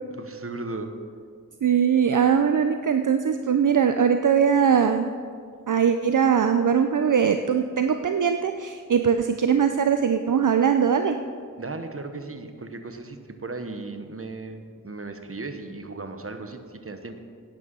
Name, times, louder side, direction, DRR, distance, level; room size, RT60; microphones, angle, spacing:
voice 1, 0.1-0.9 11.6-17.2, right 3 dB, 40° right, 7 dB, 1.1 m, -36 dB
voice 2, 1.6-5.1 5.7-11.2, right 7 dB, 65° right, 8 dB, 0.5 m, -21 dB
11.5 x 9.2 x 5.5 m, 2.1 s
wide cardioid pair, 50°, 33 cm